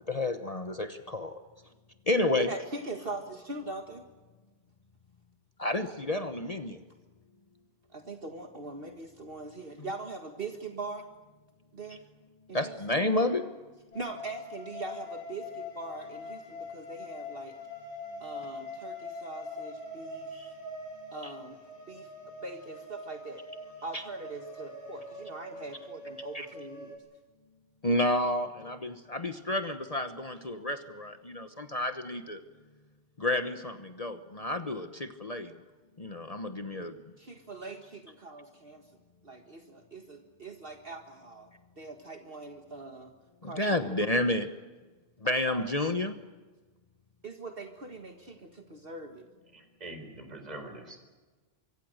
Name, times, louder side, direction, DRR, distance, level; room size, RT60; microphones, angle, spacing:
voice 1, 0.1-1.4 2.1-2.5 5.6-6.8 12.5-13.5 20.3-20.5 21.2-21.3 23.9-24.0 26.3-26.5 27.8-32.4 33.2-35.5 36.0-36.9 43.4-44.5 45.2-46.1, left 2 dB, 35° left, 8 dB, 1.2 m, -30 dB
voice 2, 2.5-4.1 7.9-11.1 11.7-12.0 12.5-12.8 13.9-17.6 18.2-20.4 21.1-21.6 21.9-22.1 22.4-23.4 23.8-27.0 37.2-38.9 39.2-41.5 41.8-43.1 43.4-44.0 45.2-45.7 47.2-49.2, right 3 dB, 55° right, 5 dB, 1.9 m, -42 dB
sound 1, 13.9-27.0, left 2 dB, 80° left, 8.2 m, -43 dB
voice 3, 49.5-51.0, right 2 dB, 35° right, 5 dB, 4.7 m, -44 dB
24.5 x 24.5 x 6.6 m, 1.3 s
omnidirectional pair, 1.2 m